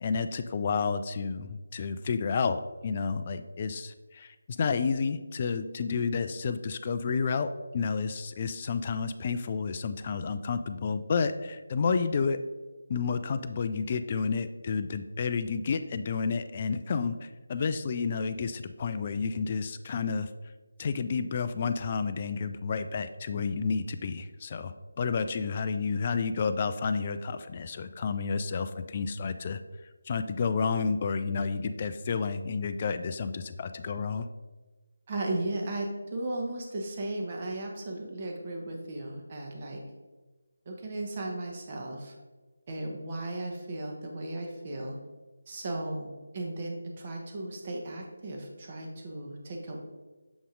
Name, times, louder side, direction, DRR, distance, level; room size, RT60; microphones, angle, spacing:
voice 1, 0.0-12.4 12.9-20.3 20.8-29.6 30.1-34.3, left 5 dB, 30° left, 11 dB, 0.3 m, -30 dB
voice 2, 35.1-39.8 40.6-42.1 42.7-45.0 45.5-49.8, right 2 dB, 30° right, 0 dB, 1.0 m, -36 dB
6.8 x 4.1 x 3.8 m, 1.3 s
figure-of-eight pair, 155°, 0 cm